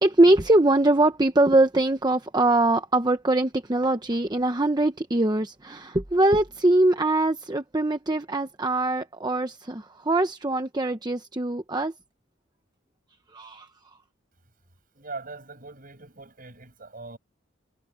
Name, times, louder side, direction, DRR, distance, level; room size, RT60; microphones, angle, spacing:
voice 1, 0.0-11.9 13.3-13.7, right 2 dB, 20° right, 0.9 m, -22 dB
voice 2, 14.9-17.2, right 3 dB, 45° right, 7.5 m, -41 dB
head